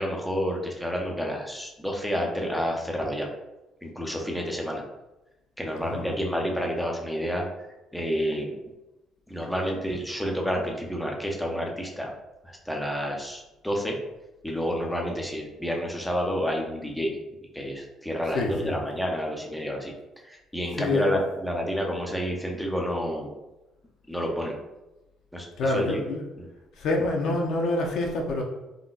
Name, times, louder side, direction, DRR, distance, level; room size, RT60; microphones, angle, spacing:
voice 1, 0.0-3.3 3.8-4.8 5.6-7.5 7.9-8.5 9.3-12.1 12.4-14.0 14.4-17.1 17.5-19.9 20.3-23.3 24.1-24.5 25.3-26.0 26.4-26.5, equal, ahead, 0 dB, 0.4 m, -29 dB
voice 2, 5.8-6.2 18.2-18.8 20.7-21.2 25.6-26.3 26.8-28.4, left 2 dB, 60° left, 1 dB, 0.5 m, -27 dB
3.8 x 2.1 x 2.3 m, 0.98 s
cardioid pair, 170°, 0 cm